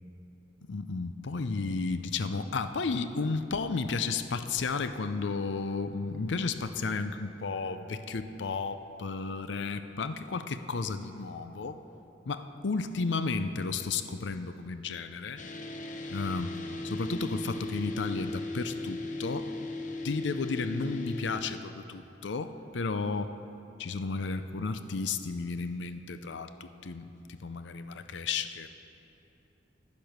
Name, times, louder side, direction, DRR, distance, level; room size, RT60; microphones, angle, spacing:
voice 1, 0.7-11.8 12.3-15.4 16.1-16.6 16.8-19.5 20.0-23.3 23.8-28.7, left 4 dB, 75° left, 10 dB, 0.6 m, -33 dB
sound 1, 15.4-21.4, left 2 dB, 45° left, 0.8 m, -37 dB
10.5 x 10.5 x 6.5 m, 2.9 s
head